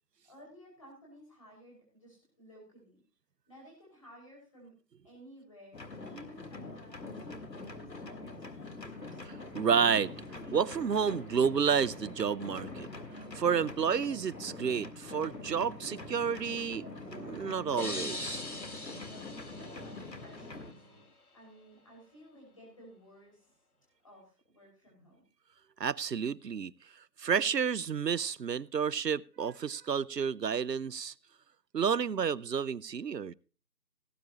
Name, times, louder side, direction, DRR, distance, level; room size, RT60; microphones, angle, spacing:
voice 1, 0.2-3.0 3.5-4.7 5.0-8.3 8.7-9.3 19.0-20.8 21.3-23.6 24.0-25.2, equal, 20° left, 5.5 m, -55 dB
sound 1, 5.7-20.7, left 3 dB, 80° left, 2.1 m, -44 dB
sound 2, 8.8-21.0, equal, 10° right, 2.2 m, -58 dB
voice 2, 9.3-10.1 10.5-12.9 13.3-18.4 25.8-26.7 27.2-31.1 31.7-33.3, right 7 dB, 75° right, 0.7 m, -30 dB
sound 3, 17.8-20.5, left 2 dB, 60° left, 1.8 m, -41 dB
18.5 x 9.6 x 2.9 m
figure-of-eight pair, 175°, 50 cm